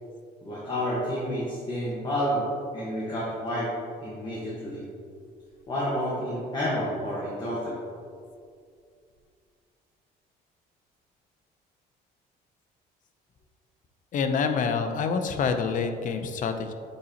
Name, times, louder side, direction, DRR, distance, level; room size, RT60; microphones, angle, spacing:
voice 1, 0.4-3.7 4.0-4.8 5.7-7.8, equal, 25° left, -7 dB, 1.3 m, -30 dB
voice 2, 14.1-16.7, left 5 dB, 50° left, 7 dB, 0.5 m, -27 dB
8.4 x 4.0 x 2.9 m, 2.3 s
cardioid pair, 110°, 17 cm